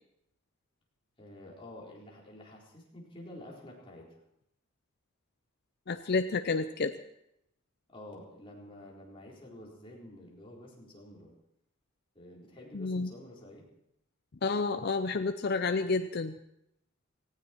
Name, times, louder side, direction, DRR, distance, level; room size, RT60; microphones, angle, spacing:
voice 1, 1.2-4.2 7.9-11.3 12.1-13.6, left 1 dB, 25° left, -3 dB, 4.0 m, -49 dB
voice 2, 5.9-6.9 12.7-13.1 14.4-16.3, left 4 dB, 50° left, 8 dB, 0.6 m, -30 dB
18.5 x 15.5 x 4.5 m, 0.80 s
head